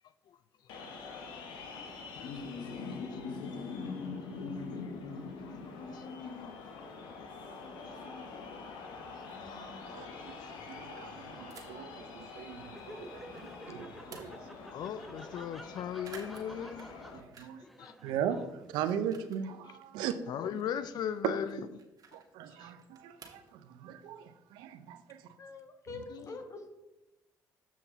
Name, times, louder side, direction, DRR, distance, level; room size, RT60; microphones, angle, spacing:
sound 1, 0.7-17.2, left 4 dB, 80° left, 1.1 m, -44 dB
voice 1, 1.9-3.2 3.6-3.8 4.2-5.1 5.4-7.3 7.7-11.4 14.7-16.9 17.4-18.0 19.6-19.8 20.3-21.7 22.5-22.7 26.1-26.4, left 9 dB, 65° left, 0.4 m, -42 dB
sound 2, 9.1-9.6 11.5-12.0 12.5-13.5 13.8-14.6 15.0-15.1 15.3-15.7 16.0-17.7 18.0-19.5 19.8-23.5, right 5 dB, 55° right, 1.4 m, -56 dB
voice 2, 10.7-14.3 17.1-17.6 18.0-20.2 21.2-21.3 22.1-25.2 25.9-26.0, right 9 dB, 80° right, 0.6 m, -38 dB
Laughter, 12.7-19.2, equal, ahead, 0.7 m, -51 dB
voice 3, 25.4-26.7, left 3 dB, 40° left, 1.4 m, -45 dB
7.3 x 5.8 x 4.0 m
supercardioid pair, 65°, 8 cm